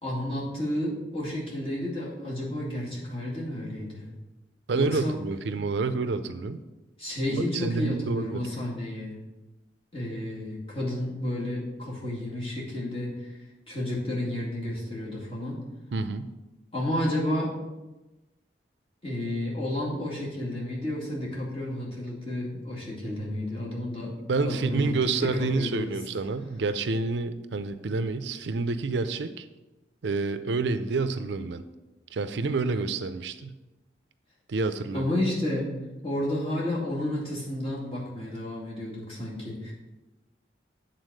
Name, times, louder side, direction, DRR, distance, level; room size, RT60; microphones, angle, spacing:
voice 1, 0.0-4.1 4.7-5.2 7.0-9.1 9.9-13.3 13.7-15.6 16.7-17.5 19.0-24.1 24.4-24.9 25.2-25.9 34.9-35.7 36.0-39.7, left 1 dB, 30° left, -5 dB, 2.3 m, -31 dB
voice 2, 4.7-6.6 7.3-8.4 15.9-16.3 24.3-29.5 30.0-31.6 32.1-33.6 34.5-35.1, right 3 dB, 75° right, 11 dB, 0.5 m, -28 dB
8.2 x 4.0 x 6.3 m, 1.1 s
head